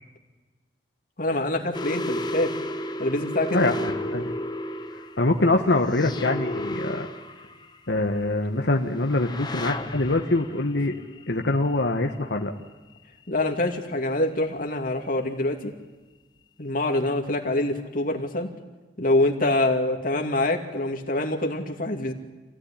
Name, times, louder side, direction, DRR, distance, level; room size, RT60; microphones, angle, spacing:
voice 1, 1.2-2.5 3.0-3.6 13.3-15.7 16.6-18.5 19.0-22.1, left 2 dB, 50° left, 3 dB, 2.6 m, -25 dB
sound 1, 1.7-8.0 9.0-11.8, left 1 dB, 25° left, 1.2 m, -33 dB
voice 2, 3.5-4.3 5.2-7.1 7.9-10.9 11.3-12.5, left 2 dB, 80° left, 2 dB, 1.4 m, -24 dB
26.0 x 17.0 x 10.0 m, 1.2 s
head